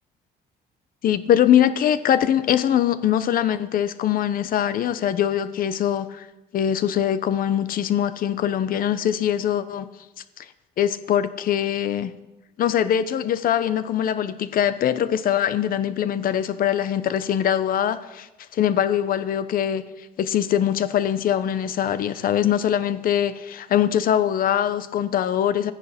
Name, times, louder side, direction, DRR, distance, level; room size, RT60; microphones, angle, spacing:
voice 1, 1.0-6.3 6.5-9.9 10.4-10.5 10.8-12.1 12.6-18.3 18.5-19.8 20.2-25.7, left 10 dB, 55° left, 13 dB, 0.9 m, -22 dB
13.5 x 10.0 x 5.9 m, 1.0 s
cardioid pair, 110°, 17 cm